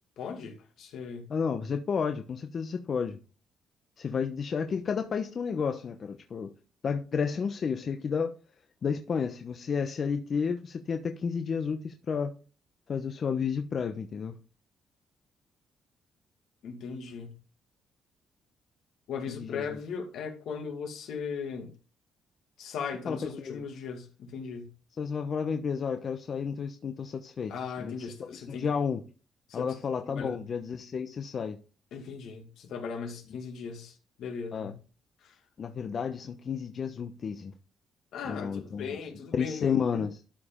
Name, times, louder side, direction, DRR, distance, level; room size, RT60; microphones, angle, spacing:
voice 1, 0.2-1.2 16.6-17.3 19.1-21.7 22.6-24.7 27.5-28.7 29.5-29.7 30.0-30.4 31.9-34.7 35.2-35.4 38.1-39.8, left 6 dB, 80° left, 2.3 m, -38 dB
voice 2, 1.3-3.2 4.0-6.5 6.8-8.3 8.8-12.3 12.9-14.4 19.3-19.8 23.1-23.6 25.0-27.5 27.8-28.1 28.5-29.0 29.5-31.6 34.5-34.7 35.6-37.5 38.2-39.0 39.3-40.2, left 6 dB, 50° left, 0.9 m, -31 dB
12.5 x 5.0 x 3.8 m
cardioid pair, 90°, 0 cm